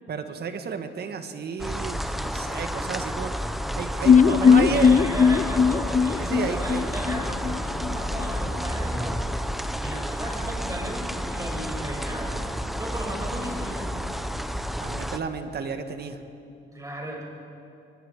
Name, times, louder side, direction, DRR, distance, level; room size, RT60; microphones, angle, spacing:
voice 1, 0.1-3.4 3.8-5.0 6.2-6.9 14.8-16.2, right 6 dB, 55° right, 7 dB, 1.8 m, -32 dB
sound 1, 1.6-15.2, equal, ahead, 1.0 m, -30 dB
sound 2, 4.1-7.9 8.2-8.3 8.6-8.7, left 6 dB, 40° left, 0.6 m, -19 dB
voice 2, 4.2-12.3 12.8-14.0 16.7-17.2, right 1 dB, 15° right, -1 dB, 6.8 m, -35 dB
25.5 x 21.5 x 5.0 m, 2.7 s
cardioid pair, 90°, 20 cm